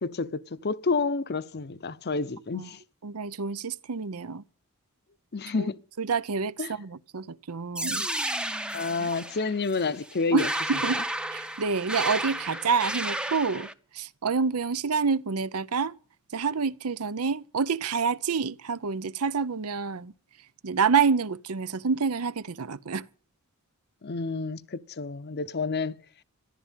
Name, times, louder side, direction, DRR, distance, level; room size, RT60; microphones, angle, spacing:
voice 1, 0.0-2.8 5.3-5.8 6.6-6.7 8.7-10.5 24.0-26.0, left 4 dB, 50° left, 0.7 m, -29 dB
voice 2, 3.0-4.4 5.6-5.7 6.0-8.1 9.0-9.1 10.3-11.0 11.3-13.7 13.9-15.9 16.3-20.1 20.6-23.1, right 5 dB, 85° right, 0.7 m, -28 dB
sound 1, 7.7-13.7, right 1 dB, 5° right, 0.7 m, -32 dB
14.0 x 11.0 x 8.1 m
head